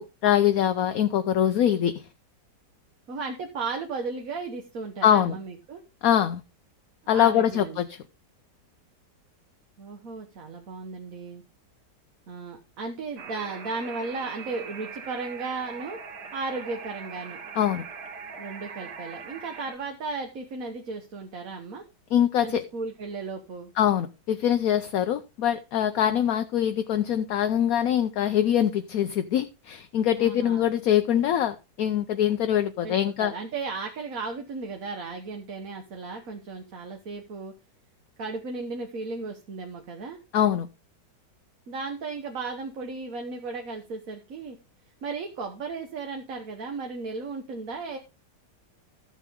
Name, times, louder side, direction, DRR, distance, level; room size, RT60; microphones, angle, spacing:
voice 1, 0.0-2.0 5.0-5.3 6.0-6.4 7.1-8.0 17.6-17.8 22.1-22.6 23.8-33.3 40.3-40.7, left 10 dB, 65° left, 0.9 m, -23 dB
voice 2, 3.1-5.8 7.1-7.8 9.8-11.4 12.3-16.0 16.3-17.4 18.4-21.8 22.4-23.7 30.2-30.6 32.8-37.5 38.2-40.2 41.7-44.6 45.0-48.0, right 4 dB, 55° right, 1.5 m, -35 dB
sound 1, 13.2-19.8, right 5 dB, 70° right, 2.0 m, -41 dB
13.5 x 7.4 x 3.6 m
omnidirectional pair, 1.9 m